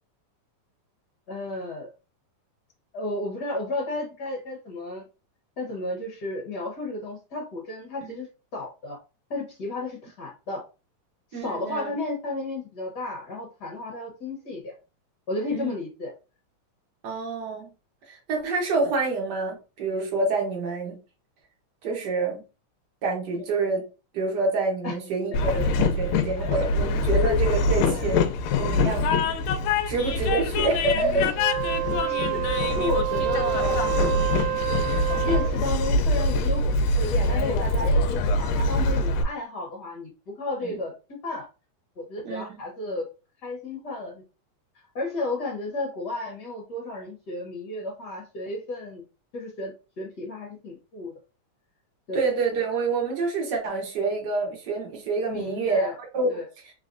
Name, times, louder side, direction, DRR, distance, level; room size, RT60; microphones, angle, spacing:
voice 1, 1.3-1.9 2.9-5.0 5.6-9.0 9.3-10.6 11.3-14.7 15.3-16.1 24.8-24.9 25.3-25.4 26.4-26.5 27.1-27.2 27.9-28.2 28.8-29.1 30.9-31.3 31.7-34.4 35.2-40.9 41.2-41.5 42.0-43.1 43.4-44.2 44.9-49.0 49.3-51.1 52.1-52.3 55.3-56.0 56.3-56.5, left 2 dB, 65° left, -1 dB, 1.0 m, -33 dB
voice 2, 11.3-11.9 15.5-15.7 17.0-17.7 18.1-21.0 21.8-22.4 23.0-23.8 24.1-28.2 28.6-29.0 29.9-31.2 40.7-40.8 42.2-42.6 52.1-56.3, right 3 dB, 65° right, 0 dB, 1.0 m, -27 dB
Train, 25.3-39.2, left 2 dB, 80° left, 1.6 m, -24 dB
Wind instrument woodwind instrument, 31.3-35.6, right 13 dB, 85° right, 2.0 m, -28 dB
4.1 x 3.7 x 2.5 m, 0.32 s
omnidirectional pair, 3.5 m